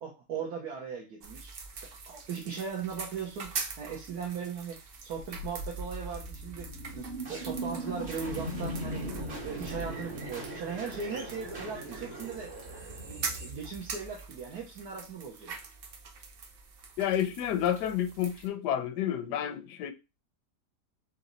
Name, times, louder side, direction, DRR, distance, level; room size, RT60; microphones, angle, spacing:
voice 1, 0.0-1.5 2.1-12.6 13.0-15.6, right 6 dB, 70° right, 1.4 m, -38 dB
sound 1, 1.2-18.5, right 5 dB, 55° right, 0.6 m, -44 dB
sound 2, 5.1-14.2, right 1 dB, 40° right, 1.4 m, -39 dB
voice 2, 17.0-19.9, left 10 dB, 80° left, 1.1 m, -30 dB
4.1 x 3.0 x 3.9 m
omnidirectional pair, 1.8 m